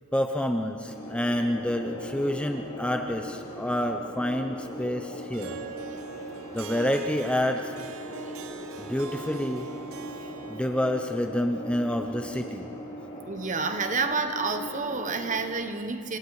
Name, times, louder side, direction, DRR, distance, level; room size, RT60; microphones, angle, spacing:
voice 1, 0.1-5.6 6.5-7.7 8.8-9.7 10.5-12.7, left 1 dB, 5° left, 5 dB, 0.8 m, -28 dB
sound 1, 0.9-15.5, equal, 30° left, 7.5 m, -40 dB
Harp, 5.3-11.1, right 6 dB, 70° right, 1.1 m, -43 dB
voice 2, 13.2-16.2, right 4 dB, 35° right, 8 dB, 1.2 m, -29 dB
27.0 x 25.5 x 4.9 m, 2.8 s
head